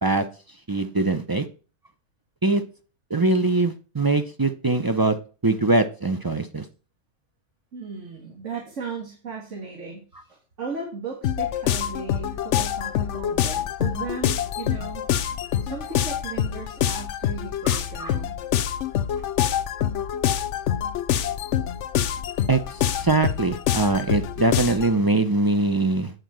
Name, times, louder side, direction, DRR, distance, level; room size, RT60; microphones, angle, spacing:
voice 1, 0.7-1.4 2.4-2.6 3.1-5.2 5.4-6.6 17.6-18.1 22.5-26.1, right 2 dB, 30° right, 8 dB, 0.4 m, -22 dB
voice 2, 7.7-10.0 10.3-15.0 15.6-18.4, right 4 dB, 80° right, 1 dB, 2.1 m, -36 dB
sound 1, 11.2-24.9, left 10 dB, 80° left, 1.0 m, -26 dB
9.1 x 4.6 x 7.5 m, 0.37 s
omnidirectional pair, 1.2 m